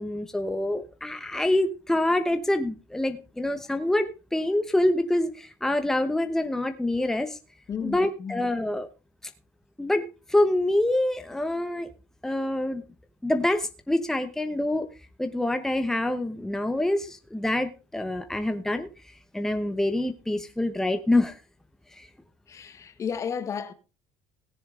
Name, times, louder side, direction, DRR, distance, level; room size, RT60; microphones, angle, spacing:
voice 1, 0.0-7.4 7.8-8.9 9.8-11.9 12.2-12.8 13.2-14.9 15.2-18.9 19.3-21.4 21.9-22.1, left 1 dB, 5° left, 1.1 m, -26 dB
voice 2, 7.7-8.5 22.5-23.7, left 7 dB, 35° left, 1.4 m, -33 dB
17.5 x 7.0 x 3.8 m
cardioid pair, 110°, 8 cm